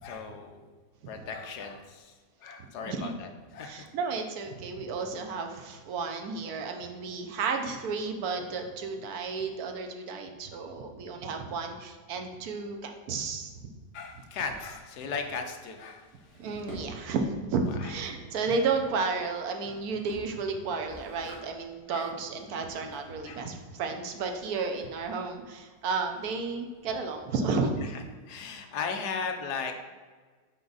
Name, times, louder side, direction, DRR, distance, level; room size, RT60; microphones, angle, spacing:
voice 1, 0.0-0.7 1.1-2.1 2.4-3.8 13.9-16.1 17.6-18.1 21.9-22.1 23.2-23.5 27.8-29.7, left 5 dB, 70° left, 5 dB, 1.2 m, -37 dB
voice 2, 3.6-13.7 16.4-27.7, right 4 dB, 65° right, 4 dB, 1.1 m, -32 dB
Drawer open or close, 12.3-27.5, right 1 dB, 45° right, 1.9 m, -52 dB
6.0 x 4.9 x 4.0 m, 1.5 s
omnidirectional pair, 2.0 m